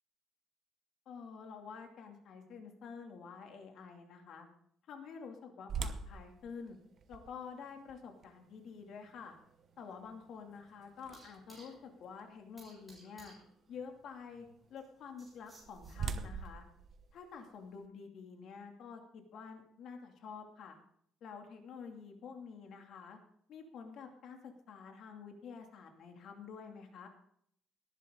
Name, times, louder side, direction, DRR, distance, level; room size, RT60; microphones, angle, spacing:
voice 1, 1.1-4.5 4.9-6.8 7.1-9.3 9.8-13.3 13.7-16.6 17.1-20.8 21.2-23.2 23.5-27.1, left 6 dB, 55° left, 3 dB, 2.5 m, -49 dB
sound 1, 5.7-11.6 12.2-12.3 12.9-13.1 15.2-17.9, right 5 dB, 45° right, 1.0 m, -44 dB
sound 2, 8.6-16.5, right 2 dB, 10° right, 7.3 m, -63 dB
19.0 x 11.0 x 3.8 m, 0.68 s
cardioid pair, 155°, 0 cm